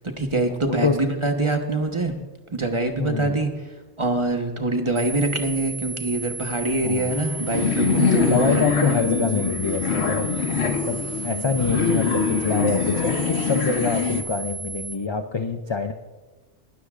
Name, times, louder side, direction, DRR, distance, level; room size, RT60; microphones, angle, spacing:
voice 1, 0.0-2.1 2.5-3.7 4.0-9.0, right 2 dB, 25° right, 4 dB, 1.1 m, -25 dB
voice 2, 0.6-1.0 3.0-3.4 6.8-7.1 8.2-15.9, left 4 dB, 45° left, 7 dB, 0.3 m, -26 dB
sound 1, 5.0-15.0, right 4 dB, 85° right, 1.3 m, -35 dB
sound 2, 7.1-14.2, left 5 dB, 65° left, 1.1 m, -24 dB
19.0 x 13.0 x 2.5 m, 1.2 s
omnidirectional pair, 1.2 m